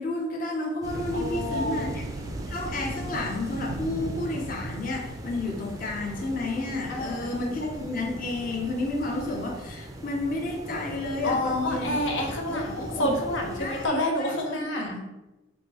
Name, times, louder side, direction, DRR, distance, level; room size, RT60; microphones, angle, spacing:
voice 1, 0.0-2.0 2.5-12.0 12.5-13.1 13.6-15.0, left 2 dB, 50° left, 0 dB, 0.6 m, -31 dB
sound 1, 0.8-13.9, right 1 dB, 20° right, 0.4 m, -40 dB
sound 2, 0.9-9.8, right 2 dB, 90° right, 0.5 m, -40 dB
voice 2, 1.1-1.9 6.9-7.3 11.2-14.9, left 1 dB, 85° left, 1 dB, 0.7 m, -29 dB
3.6 x 2.6 x 4.2 m, 1.0 s
head